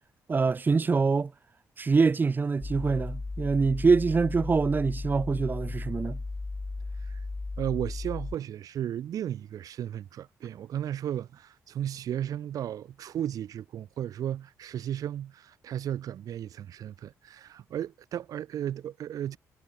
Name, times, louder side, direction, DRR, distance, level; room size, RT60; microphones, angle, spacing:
voice 1, 0.3-1.3 1.8-6.2, right 4 dB, 30° right, 0.6 m, -25 dB
sound 1, 2.6-8.3, left 3 dB, 20° left, 0.8 m, -35 dB
voice 2, 7.6-19.4, right 10 dB, 65° right, 0.8 m, -34 dB
supercardioid pair, 70°, 6 cm